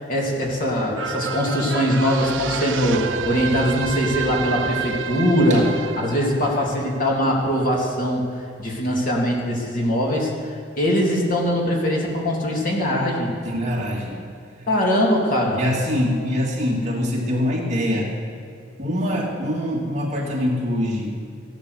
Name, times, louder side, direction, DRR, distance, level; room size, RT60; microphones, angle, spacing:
voice 1, 0.1-5.6 6.0-8.3 8.6-13.3 14.7-15.6, equal, 45° left, -2 dB, 2.9 m, -21 dB
sound 1, 0.9-7.6 8.0-8.1, right 6 dB, 75° right, 0.7 m, -30 dB
voice 2, 13.4-14.2 15.6-18.1 18.8-21.2, left 1 dB, 35° right, -3 dB, 2.5 m, -24 dB
15.5 x 11.0 x 6.6 m, 2.4 s
head